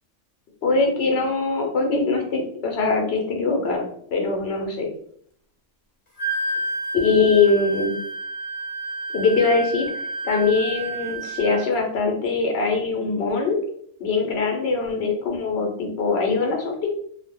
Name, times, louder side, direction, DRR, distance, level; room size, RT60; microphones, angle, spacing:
voice 1, 0.6-3.8 4.1-4.9 7.0-7.9 9.1-13.6 14.0-16.9, left 4 dB, 60° left, 2 dB, 0.9 m, -22 dB
Wind instrument woodwind instrument, 6.2-11.6, right 2 dB, 35° left, 0.5 m, -30 dB
2.3 x 2.1 x 3.5 m, 0.64 s
omnidirectional pair, 1.3 m